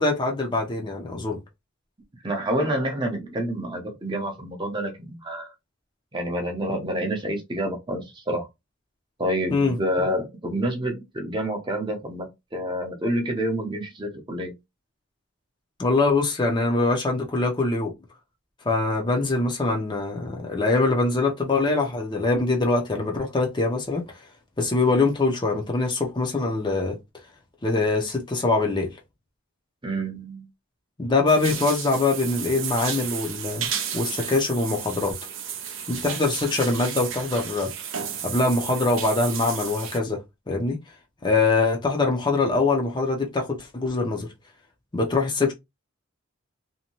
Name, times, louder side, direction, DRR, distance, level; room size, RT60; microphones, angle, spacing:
voice 1, 0.0-1.4 9.5-9.8 15.8-17.9 18.7-24.1 24.6-27.0 27.6-28.9 31.0-35.2 35.9-37.7 38.2-40.2 40.5-40.8 41.2-44.3 44.9-45.5, left 3 dB, 20° left, 0.5 m, -23 dB
voice 2, 2.2-5.5 6.1-8.5 9.2-14.5 29.8-30.5, right 1 dB, 20° right, 0.6 m, -28 dB
sound 1, 31.3-40.0, right 8 dB, 65° right, 0.6 m, -33 dB
2.6 x 2.2 x 2.9 m
head